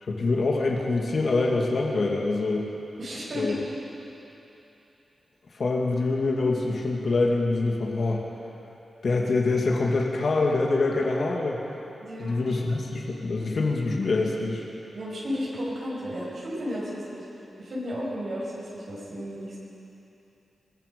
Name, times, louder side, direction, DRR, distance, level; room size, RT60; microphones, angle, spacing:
voice 1, 0.0-2.7 3.3-3.5 5.5-8.2 9.0-11.6 12.2-14.6, left 3 dB, 55° left, -1 dB, 2.3 m, -25 dB
voice 2, 3.0-3.6 12.0-12.6 14.9-17.3 17.6-19.6, equal, 55° right, -6 dB, 6.1 m, -33 dB
24.0 x 21.0 x 5.4 m, 3.0 s
wide cardioid pair, 135°, 0 cm